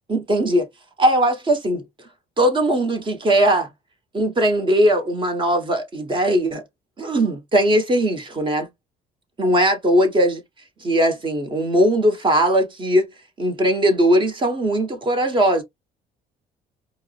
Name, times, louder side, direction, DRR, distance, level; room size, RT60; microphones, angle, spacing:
voice 1, 0.1-0.7 1.0-1.8 2.4-3.7 4.1-6.6 7.0-8.7 9.4-10.4 10.8-13.1 13.4-15.6, right 1 dB, 30° right, 1.2 m, -19 dB
4.6 x 2.1 x 2.4 m
cardioid pair, 110°, 17 cm